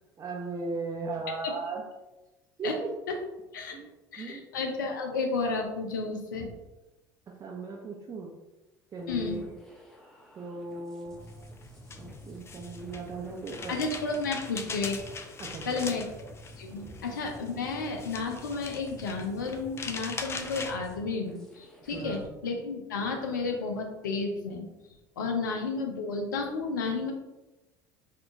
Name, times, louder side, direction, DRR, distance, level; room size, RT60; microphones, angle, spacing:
voice 1, 0.2-1.8 2.6-2.9 3.7-3.9 4.2-4.4 7.3-8.3 8.9-9.6 10.4-11.6 12.0-13.8 15.4-15.9 16.8-16.9 21.9-22.2, right 3 dB, 35° right, -1 dB, 0.6 m, -37 dB
voice 2, 4.1-6.5 9.1-9.4 13.7-15.0 15.7-16.0 16.6-24.7 25.2-27.1, left 4 dB, 80° left, 3 dB, 0.5 m, -32 dB
sound 1, 9.0-22.3, left 1 dB, 5° left, 0.9 m, -49 dB
sound 2, 11.3-20.7, left 4 dB, 25° left, 0.5 m, -41 dB
3.6 x 2.4 x 3.6 m, 1.0 s
hypercardioid pair, 65°, 10 cm